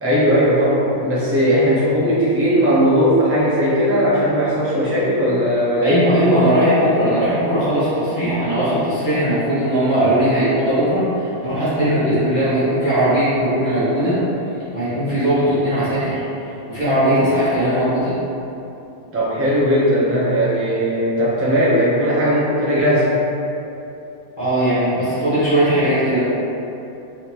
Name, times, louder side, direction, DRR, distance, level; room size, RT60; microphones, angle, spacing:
voice 1, 0.0-6.1 19.1-23.2, equal, 15° right, -9 dB, 0.6 m, -17 dB
voice 2, 5.8-14.2 14.7-16.2 16.7-18.1 24.4-26.2, right 1 dB, 35° left, -13 dB, 1.5 m, -18 dB
3.8 x 3.4 x 2.9 m, 2.8 s
omnidirectional pair, 1.5 m